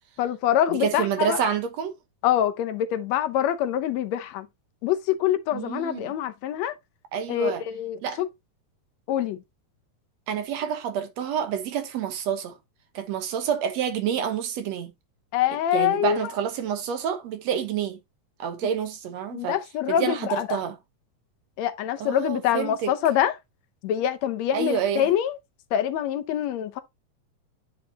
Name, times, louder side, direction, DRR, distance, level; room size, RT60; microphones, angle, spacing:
voice 1, 0.2-1.5 2.2-4.5 4.8-6.7 7.3-8.3 9.1-9.4 15.3-16.2 19.3-20.6 21.6-23.3 23.8-25.4 25.7-26.8, left 11 dB, 70° left, 1.9 m, -25 dB
voice 2, 0.7-1.9 5.5-6.1 7.1-7.6 8.0-8.2 10.3-12.6 12.9-14.9 15.7-18.0 18.4-19.6 19.9-20.8 22.0-22.9 24.5-25.1, right 8 dB, 65° right, 2.3 m, -28 dB
9.3 x 4.6 x 2.8 m
omnidirectional pair, 3.4 m